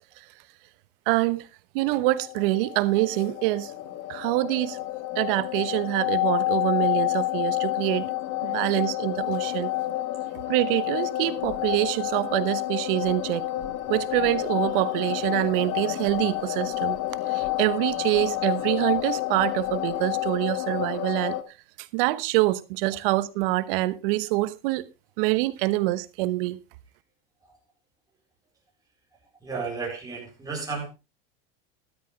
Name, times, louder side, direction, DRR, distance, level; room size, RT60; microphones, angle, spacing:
voice 1, 1.1-1.4 1.7-3.7 4.1-4.8 5.1-8.1 8.4-9.7 10.5-13.5 13.9-17.0 17.3-21.4 21.8-24.8 25.2-26.6, right 18 dB, 65° right, 1.1 m, -25 dB
sound 1, 1.9-21.4, left 16 dB, 55° left, 1.7 m, -29 dB
voice 2, 8.4-8.9 13.8-13.9 22.9-23.0 27.4-27.5 29.4-30.9, right 4 dB, 10° right, 4.8 m, -35 dB
13.5 x 13.0 x 3.3 m
supercardioid pair, 105°, 30 cm